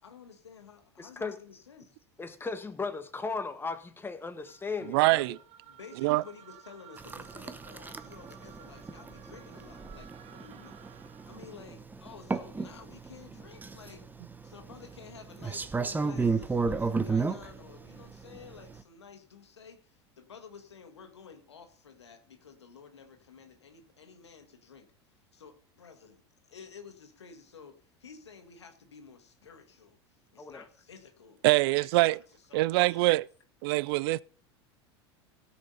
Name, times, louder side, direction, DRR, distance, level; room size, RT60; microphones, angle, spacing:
voice 1, 0.0-2.0 5.7-14.0 14.4-24.9 25.3-26.2 26.5-30.0 30.3-33.2, left 6 dB, 90° left, 1.7 m, -52 dB
voice 2, 1.0-1.4 2.2-5.2 30.4-30.6, left 4 dB, 15° left, 1.6 m, -36 dB
sound 1, 4.4-11.7, right 10 dB, 50° right, 1.3 m, -55 dB
voice 3, 4.9-5.4 6.0-6.2 31.4-32.2 32.5-33.2 33.6-34.2, right 21 dB, 65° right, 0.4 m, -24 dB
sound 2, 7.0-18.8, right 4 dB, 15° right, 0.9 m, -34 dB
17.0 x 5.9 x 5.4 m
hypercardioid pair, 85°, 14 cm